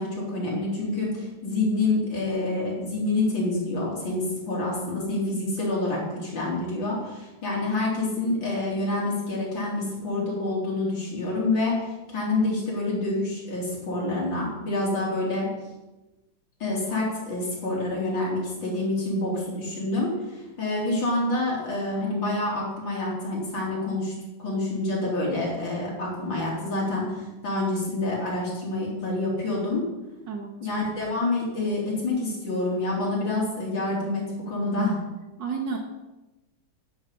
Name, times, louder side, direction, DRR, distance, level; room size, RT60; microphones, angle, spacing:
voice 1, 0.0-15.5 16.6-24.1 24.4-29.8 30.6-35.0, left 2 dB, 80° left, -5 dB, 4.5 m, -27 dB
voice 2, 35.4-35.8, right 5 dB, 70° right, 0 dB, 2.2 m, -30 dB
10.5 x 8.0 x 8.5 m, 1.1 s
omnidirectional pair, 2.0 m